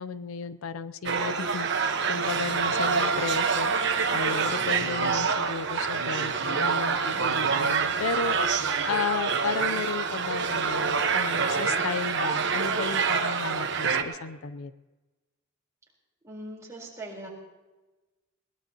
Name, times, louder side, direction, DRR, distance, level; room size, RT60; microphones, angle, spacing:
voice 1, 0.0-3.7 4.1-14.7, left 5 dB, 90° left, 12 dB, 0.6 m, -34 dB
sound 1, 1.1-14.0, right 5 dB, 60° right, 1.1 m, -26 dB
voice 2, 16.2-17.3, right 1 dB, 15° right, -4 dB, 4.0 m, -40 dB
21.5 x 19.0 x 2.9 m, 1.2 s
head